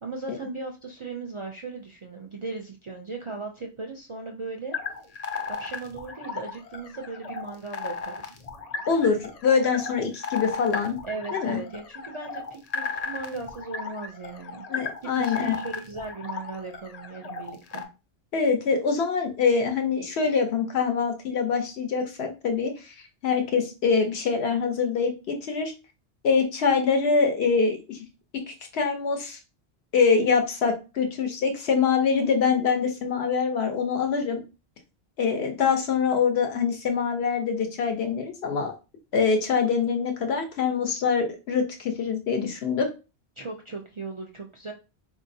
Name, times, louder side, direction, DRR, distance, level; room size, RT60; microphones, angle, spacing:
voice 1, 0.0-4.8 5.6-8.5 11.0-14.7 15.0-17.8 43.4-44.7, right 3 dB, 50° right, 2 dB, 0.4 m, -37 dB
sound 1, 4.7-17.9, left 5 dB, 50° left, 0.5 m, -35 dB
voice 2, 8.9-11.0 11.3-11.6 14.7-15.6 18.3-22.9 23.2-25.7 26.2-28.0 28.5-29.4 29.9-34.4 35.2-38.7 39.1-42.9, left 5 dB, 80° left, 4 dB, 1.0 m, -24 dB
4.0 x 2.7 x 2.6 m, 0.30 s
omnidirectional pair, 1.1 m